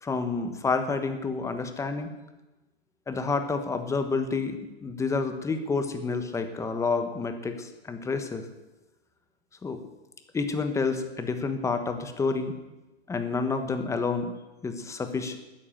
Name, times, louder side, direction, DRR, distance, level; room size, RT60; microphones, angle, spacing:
voice 1, 0.0-2.1 3.1-8.5 9.6-9.8 10.3-12.5 13.1-14.3 14.6-15.4, left 4 dB, 10° left, 8 dB, 1.2 m, -29 dB
13.5 x 9.6 x 9.0 m, 1.1 s
hypercardioid pair, 145°, 33 cm